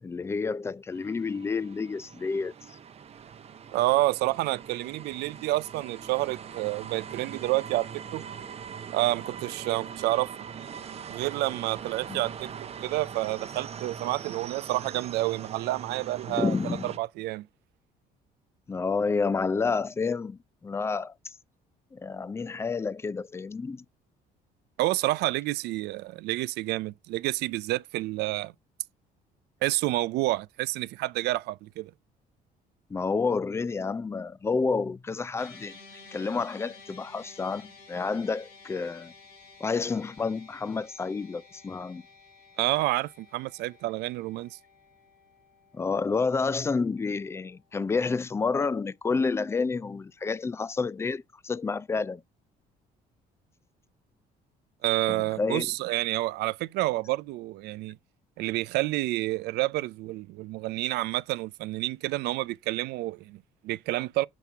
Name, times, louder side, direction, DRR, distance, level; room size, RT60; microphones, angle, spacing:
voice 1, 0.0-2.8 12.1-12.2 16.3-16.9 18.7-21.3 21.9-23.8 32.9-35.8 36.1-39.1 39.6-42.0 45.7-52.2 55.1-55.7, left 4 dB, 15° left, 0.3 m, -29 dB
sound 1, 0.9-17.0, right 7 dB, 40° right, 0.7 m, -42 dB
voice 2, 3.7-8.2 8.9-10.3 11.1-17.5 24.8-28.5 29.6-31.9 42.6-44.6 54.8-58.0 58.4-64.3, right 18 dB, 80° right, 0.4 m, -29 dB
sound 2, 35.4-47.8, left 3 dB, 85° left, 3.3 m, -53 dB
7.2 x 5.8 x 3.5 m
cardioid pair, 110°, 17 cm